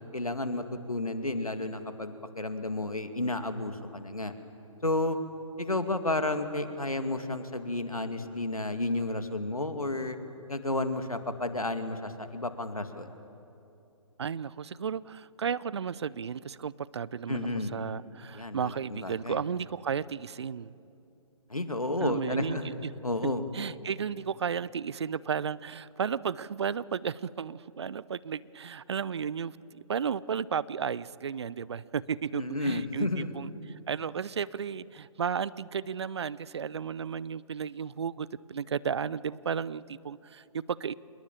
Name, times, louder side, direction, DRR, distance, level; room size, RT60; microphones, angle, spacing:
voice 1, 0.1-4.3 4.8-5.2 5.6-10.2 10.5-13.1 17.3-17.8 18.3-19.4 21.5-22.7 23.0-23.4 32.3-33.3, left 2 dB, 85° left, 8 dB, 2.2 m, -32 dB
voice 2, 14.2-20.7 22.0-22.9 23.5-33.5 33.9-40.9, right 7 dB, 50° right, 21 dB, 0.6 m, -34 dB
26.5 x 21.0 x 9.0 m, 2.8 s
figure-of-eight pair, 140°, 18 cm